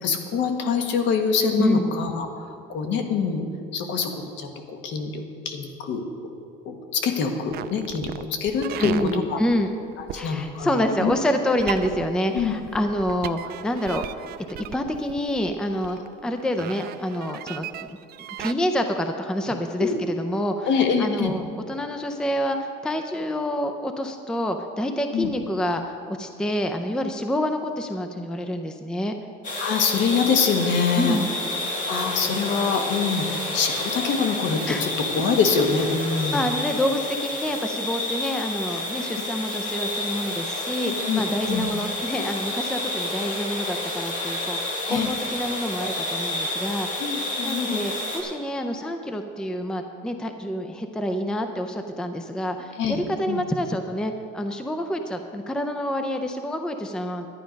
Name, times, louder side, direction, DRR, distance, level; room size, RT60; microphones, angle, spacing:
voice 1, 0.0-3.4 3.7-6.0 6.6-9.4 10.0-10.7 11.0-11.1 12.3-12.5 19.8-20.0 20.7-21.3 25.1-25.3 29.6-31.2 31.9-34.9 35.1-36.4 40.8-41.7 44.9-45.1 47.0-47.8 52.8-53.4, left 5 dB, 60° left, 5 dB, 1.4 m, -25 dB
voice 2, 1.6-1.9 8.8-9.7 10.1-14.2 14.6-17.9 18.4-20.7 21.0-29.1 31.0-31.3 34.7-34.8 36.3-47.2 47.4-57.3, equal, 5° left, 6 dB, 0.5 m, -27 dB
sound 1, 7.5-18.5, right 12 dB, 50° right, 0.4 m, -36 dB
sound 2, 29.4-48.2, left 1 dB, 40° left, 2.5 m, -30 dB
12.0 x 10.0 x 5.2 m, 2.5 s
cardioid pair, 155°, 21 cm